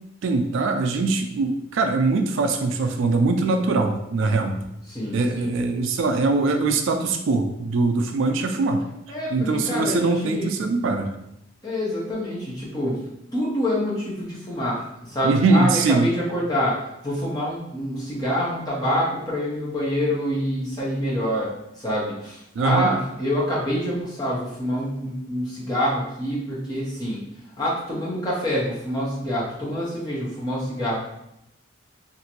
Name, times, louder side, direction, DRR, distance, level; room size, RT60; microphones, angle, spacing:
voice 1, 0.2-4.6 5.1-8.8 9.3-11.1 15.2-16.1 22.6-22.9, right 3 dB, 70° right, 5 dB, 0.3 m, -22 dB
voice 2, 4.9-5.5 9.1-9.3 9.6-10.5 11.6-13.0 13.3-21.5 21.8-27.2 27.6-31.0, equal, 20° left, -6 dB, 0.8 m, -26 dB
2.9 x 2.6 x 2.8 m, 0.83 s
head